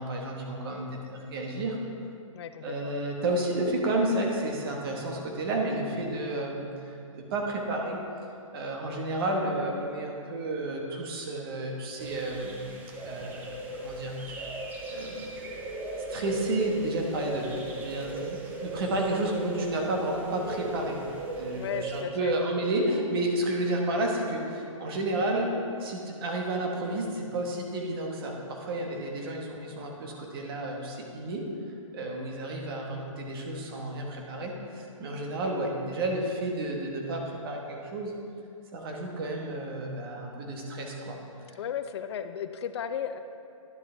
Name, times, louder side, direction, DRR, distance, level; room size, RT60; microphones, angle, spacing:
voice 1, 0.0-1.8 2.6-8.0 8.5-12.7 13.0-14.4 14.9-15.3 16.1-21.0 21.3-25.5 25.8-31.5 31.9-38.1 38.7-41.2 41.5-41.6, right 1 dB, 45° right, 1 dB, 1.2 m, -31 dB
voice 2, 2.3-3.0 21.5-22.3 32.8-33.1 41.5-43.2, left 8 dB, 50° left, 9 dB, 0.5 m, -35 dB
sound 1, 12.0-22.0, right 2 dB, 10° right, 0.5 m, -38 dB
10.5 x 6.3 x 3.4 m, 2.5 s
hypercardioid pair, 155°, 17 cm